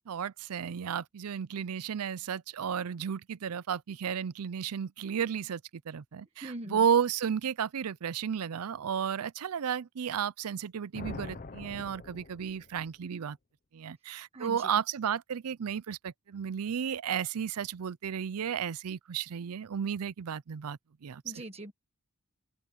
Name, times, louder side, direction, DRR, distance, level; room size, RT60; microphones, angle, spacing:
voice 1, 0.0-5.6 5.9-13.4 13.7-21.4, right 8 dB, 75° right, 0.5 m, -33 dB
voice 2, 6.4-6.8 14.3-14.7 21.2-21.7, right 1 dB, 30° right, 1.3 m, -41 dB
sound 1, 10.9-12.9, left 3 dB, 40° left, 0.8 m, -44 dB
open air
head